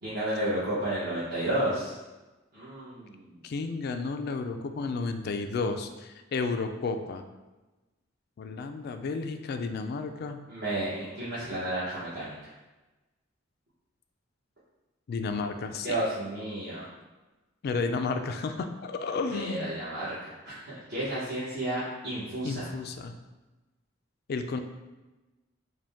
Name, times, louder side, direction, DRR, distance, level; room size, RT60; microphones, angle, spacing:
voice 1, 0.0-2.0 2.5-3.4 10.5-12.5 15.8-16.9 19.3-22.7, right 1 dB, 55° right, -12 dB, 1.2 m, -32 dB
voice 2, 3.4-7.2 8.4-10.4 15.1-15.9 17.6-19.7 22.4-23.2 24.3-24.6, left 4 dB, 50° left, 7 dB, 0.3 m, -32 dB
5.0 x 2.2 x 3.5 m, 1.1 s
head